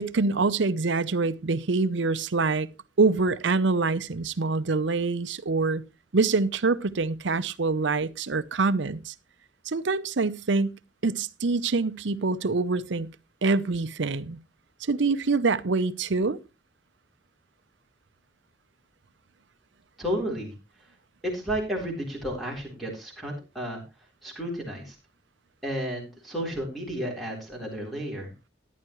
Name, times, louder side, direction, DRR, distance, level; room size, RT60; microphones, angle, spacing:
voice 1, 0.0-2.7 3.0-5.8 6.1-9.1 9.7-10.7 11.0-13.1 13.4-14.4 14.9-16.4, right 3 dB, 70° right, 0.7 m, -25 dB
voice 2, 20.0-20.5 21.2-23.8 24.2-25.0 25.6-28.3, equal, ahead, 3.9 m, -32 dB
14.0 x 11.0 x 3.1 m
head